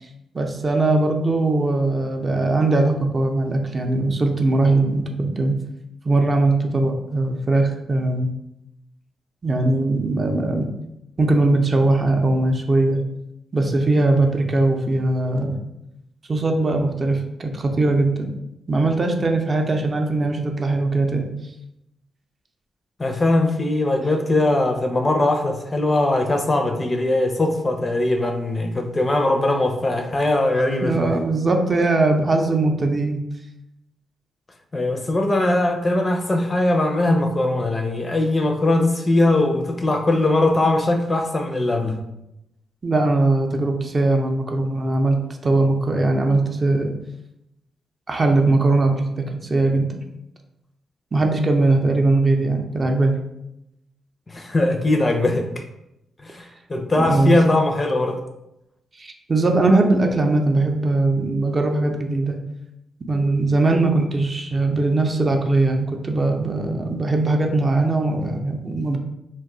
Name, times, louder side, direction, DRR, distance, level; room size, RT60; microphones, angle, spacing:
voice 1, 0.3-5.6 6.0-8.3 9.4-10.7 11.2-13.0 13.5-15.6 16.3-18.3 18.7-21.3 30.8-33.2 42.8-45.2 45.4-46.9 48.1-50.0 51.1-53.1 57.0-57.4 59.0-62.4 63.1-69.0, right 2 dB, 40° right, 3 dB, 0.5 m, -20 dB
voice 2, 23.0-31.1 34.7-42.0 54.3-55.5 56.2-56.4 56.7-58.2, left 2 dB, 30° left, 5 dB, 0.5 m, -20 dB
2.5 x 2.2 x 3.7 m, 0.86 s
cardioid pair, 65°, 0 cm